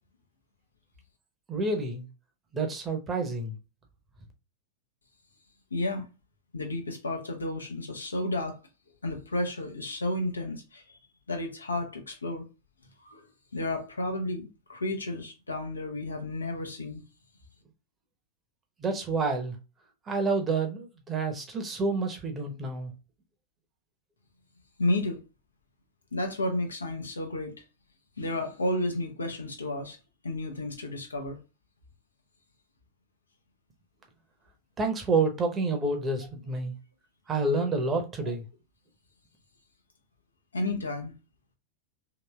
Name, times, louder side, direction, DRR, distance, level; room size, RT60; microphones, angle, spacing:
voice 1, 1.5-2.1 2.5-3.6 18.8-19.6 20.1-22.9 34.8-36.7 37.3-38.4, right 3 dB, 20° right, 0.8 m, -28 dB
voice 2, 5.7-6.1 6.5-8.6 9.0-11.0 11.3-12.5 13.0-13.3 13.5-17.0 24.8-25.2 26.1-27.6 28.2-30.0 30.2-31.4 40.5-41.1, left 1 dB, 75° left, 0.7 m, -32 dB
3.0 x 2.9 x 2.2 m
figure-of-eight pair, 90°, 0 cm